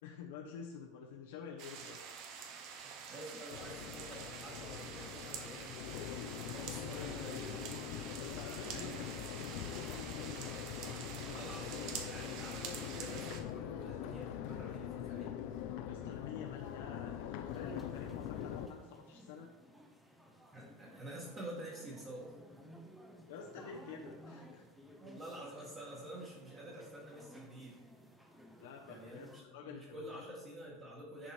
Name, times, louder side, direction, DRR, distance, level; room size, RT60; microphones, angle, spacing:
voice 1, 0.0-2.0 6.9-7.0 8.2-11.0 15.9-19.5 23.3-24.7 28.6-30.2, left 6 dB, 80° left, 0 dB, 1.0 m, -49 dB
sound 1, 1.6-13.4, right 6 dB, 40° right, 1.0 m, -47 dB
voice 2, 2.7-5.8 6.4-7.7 8.6-8.9 11.2-15.3 20.5-22.3 25.0-27.8 28.9-31.3, right 1 dB, 20° right, -5 dB, 1.7 m, -49 dB
Crowd, 3.5-18.7, left 9 dB, 50° left, 0.6 m, -43 dB
sound 2, 17.5-29.4, equal, ahead, 0.7 m, -57 dB
10.0 x 4.9 x 4.4 m, 1.1 s
supercardioid pair, 170°, 0 cm